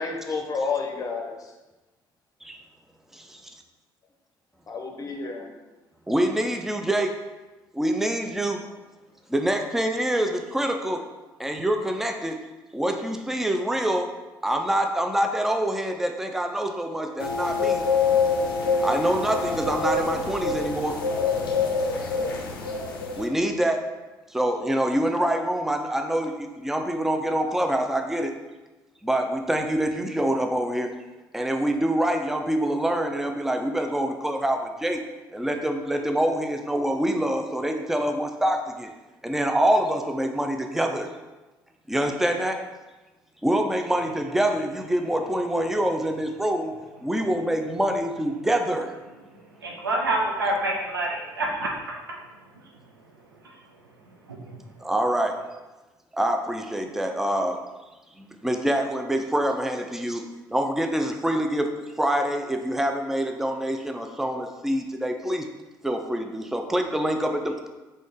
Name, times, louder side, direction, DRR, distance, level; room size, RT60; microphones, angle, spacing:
voice 1, 0.0-1.3 4.7-5.5, left 4 dB, 30° left, 1 dB, 0.7 m, -30 dB
voice 2, 6.1-7.2 7.7-8.6 9.3-11.0 11.4-12.4 12.7-14.1 14.4-17.8 18.8-21.0 23.2-23.8 24.3-28.4 29.0-30.9 31.3-35.0 35.3-38.9 39.2-41.1 41.9-42.6 43.4-46.7 47.0-48.9 54.8-55.4 56.1-57.6 58.2-60.2 60.5-61.7 62.0-65.5 65.8-67.7, right 1 dB, 5° right, 4 dB, 0.4 m, -25 dB
sound 1, 17.2-23.3, left 4 dB, 80° left, 0.4 m, -26 dB
voice 3, 49.6-51.7 54.3-54.6, right 1 dB, 80° right, -1 dB, 0.6 m, -27 dB
3.8 x 3.1 x 3.6 m, 1.1 s
figure-of-eight pair, 50°, 12 cm